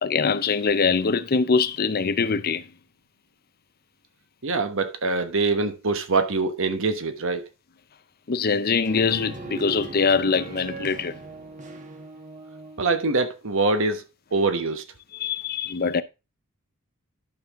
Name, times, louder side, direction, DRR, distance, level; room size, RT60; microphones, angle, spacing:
voice 1, 0.0-2.7 8.3-11.2 15.1-16.0, left 5 dB, 45° left, 0.6 m, -23 dB
voice 2, 4.4-7.5 12.8-14.0 14.3-14.8, right 3 dB, 65° right, 1.2 m, -24 dB
sound 1, 8.9-13.0, right 3 dB, 35° right, 1.3 m, -38 dB
11.5 x 5.6 x 3.6 m
head